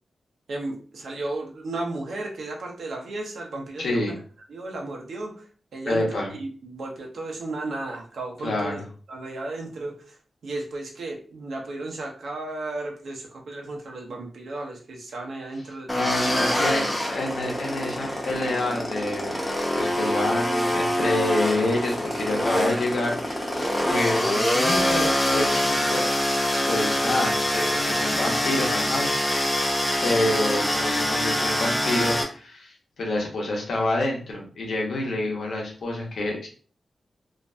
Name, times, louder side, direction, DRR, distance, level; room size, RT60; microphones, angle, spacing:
voice 1, 0.5-4.1 4.5-8.8 9.1-16.3 16.6-17.0, right 2 dB, 85° right, 0 dB, 0.6 m, -34 dB
voice 2, 3.8-4.1 5.9-6.3 8.4-8.7 15.9-16.8 17.1-19.4 19.8-26.1 26.6-29.6 30.0-36.5, left 2 dB, 90° left, -1 dB, 0.8 m, -28 dB
sound 1, 15.9-32.2, left 1 dB, 10° left, 0.4 m, -25 dB
2.5 x 2.1 x 2.5 m, 0.41 s
wide cardioid pair, 165°, 0 cm